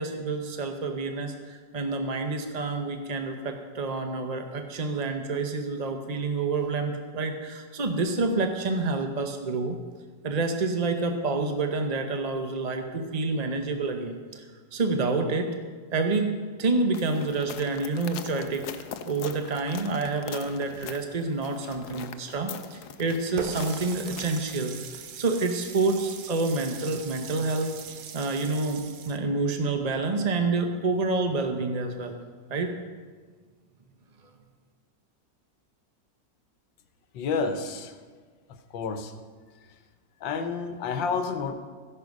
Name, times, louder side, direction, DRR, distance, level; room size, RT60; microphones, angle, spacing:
voice 1, 0.0-9.8 10.2-14.4 14.7-15.5 15.9-18.6 19.0-27.7 28.1-32.2 32.5-32.7, right 3 dB, 40° right, 5 dB, 0.6 m, -28 dB
sound 1, 16.9-24.6, left 8 dB, 65° left, 1.2 m, -42 dB
Water tap faucet, 23.4-29.2, right 7 dB, 60° right, 1.2 m, -40 dB
voice 2, 37.1-38.0 38.7-39.1 40.2-41.6, left 5 dB, 90° left, 8 dB, 1.7 m, -29 dB
15.0 x 11.0 x 5.3 m, 1.5 s
omnidirectional pair, 2.0 m